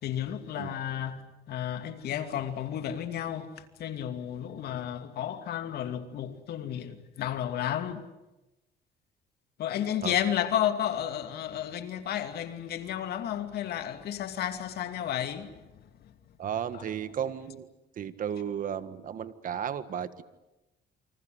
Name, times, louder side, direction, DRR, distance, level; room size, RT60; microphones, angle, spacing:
voice 1, 0.0-8.0 9.6-15.5, left 10 dB, 70° left, 2.7 m, -32 dB
voice 2, 16.4-17.7 18.0-20.2, right 9 dB, 55° right, 1.7 m, -34 dB
28.5 x 25.5 x 8.0 m
cardioid pair, 115°, 17 cm